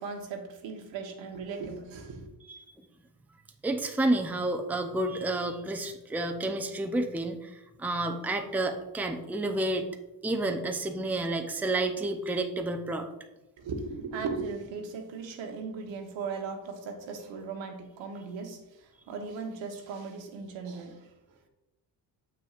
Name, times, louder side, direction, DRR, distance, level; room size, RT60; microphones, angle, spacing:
voice 1, 0.0-2.3 13.6-21.1, right 4 dB, 80° right, 4 dB, 1.1 m, -38 dB
voice 2, 3.6-9.9 10.2-13.1, right 2 dB, 5° right, 5 dB, 0.5 m, -30 dB
6.8 x 6.0 x 2.5 m, 1.0 s
cardioid pair, 85°, 44 cm